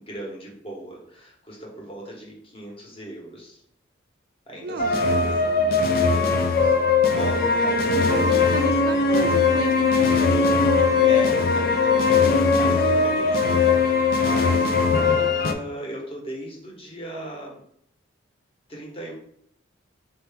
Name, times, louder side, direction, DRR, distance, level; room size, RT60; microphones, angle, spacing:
voice 1, 0.0-3.6 4.5-7.9 8.8-9.2 11.0-14.9 15.4-17.6 18.7-19.1, right 1 dB, 30° left, -3 dB, 1.2 m, -37 dB
voice 2, 4.6-5.4 7.6-10.4 14.5-14.9, right 4 dB, 55° right, 9 dB, 0.4 m, -33 dB
sound 1, 4.8-15.5, left 4 dB, 50° left, 0.4 m, -20 dB
4.5 x 2.9 x 3.5 m, 0.69 s
head